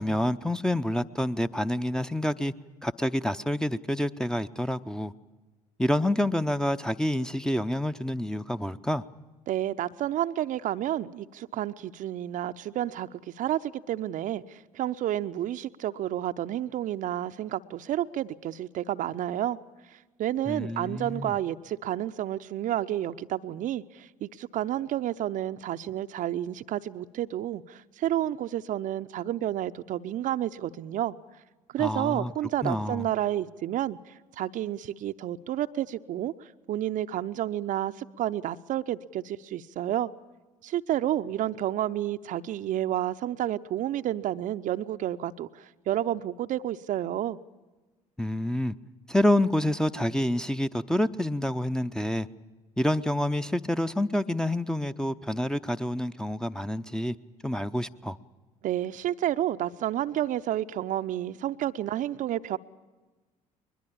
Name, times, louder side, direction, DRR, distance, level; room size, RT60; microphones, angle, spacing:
voice 1, 0.0-2.5 2.8-5.1 5.8-9.0 20.5-21.3 31.8-32.3 32.6-33.1 48.2-48.7 49.1-52.3 52.8-57.1 57.4-58.2, left 1 dB, 5° left, 11 dB, 0.7 m, -28 dB
voice 2, 9.5-13.1 13.4-19.6 19.9-31.1 31.7-40.1 40.6-47.4 58.6-62.6, right 12 dB, 45° right, 11 dB, 0.6 m, -30 dB
21.5 x 21.5 x 8.7 m, 1.2 s
figure-of-eight pair, 55°, 18 cm